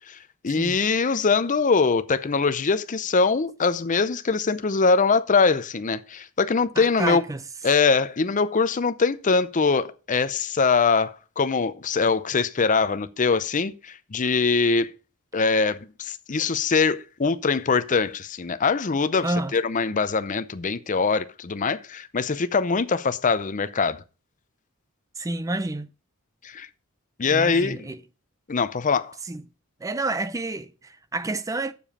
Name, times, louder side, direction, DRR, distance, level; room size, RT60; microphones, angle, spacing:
voice 1, 0.4-7.2 7.6-14.9 15.3-24.0 26.4-26.7 27.2-27.9 28.5-29.1, left 4 dB, 35° left, 0.6 m, -23 dB
voice 2, 6.8-7.4 19.2-19.5 25.2-25.9 27.3-28.0 29.2-29.4 29.8-31.7, right 2 dB, 15° right, 0.4 m, -29 dB
7.4 x 7.0 x 5.4 m
head